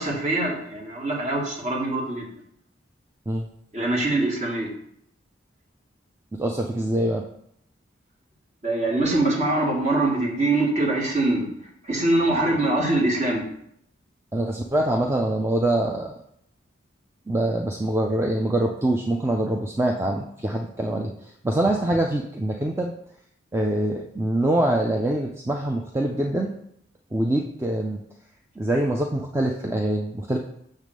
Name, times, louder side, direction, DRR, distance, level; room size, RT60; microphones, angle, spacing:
voice 1, 0.0-2.3 3.7-4.7 8.6-11.5 11.8-13.5, right 2 dB, 35° right, -1 dB, 1.5 m, -23 dB
voice 2, 6.4-7.2 14.3-16.1 17.3-21.1 21.4-22.9 23.5-26.5 27.1-28.0 28.6-30.4, right 1 dB, 15° right, 1 dB, 0.4 m, -24 dB
6.5 x 3.5 x 6.2 m, 0.72 s
head